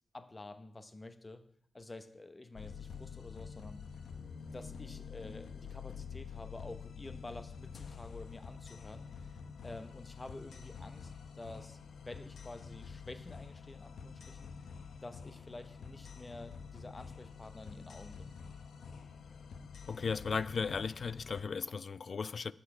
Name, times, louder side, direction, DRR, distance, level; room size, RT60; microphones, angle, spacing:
voice 1, 0.1-1.4 1.7-3.8 4.5-9.4 9.6-14.5 15.0-18.3, left 2 dB, 20° left, 0.8 m, -49 dB
sound 1, 2.5-21.4, left 6 dB, 80° left, 0.8 m, -48 dB
voice 2, 19.9-22.5, left 5 dB, 45° left, 0.3 m, -36 dB
12.0 x 8.4 x 4.8 m
wide cardioid pair, 145°, 0 cm